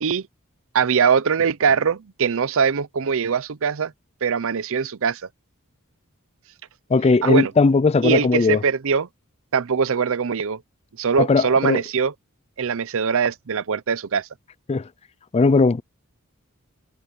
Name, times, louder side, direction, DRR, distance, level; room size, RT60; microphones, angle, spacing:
voice 1, 0.7-3.9 4.2-5.2 7.2-7.5 8.0-9.1 9.5-10.6 11.0-12.1 12.6-14.3, right 6 dB, 65° right, 0.6 m, -22 dB
voice 2, 6.9-8.6 11.2-11.8 14.7-14.9 15.3-15.8, left 3 dB, 30° left, 0.4 m, -18 dB
head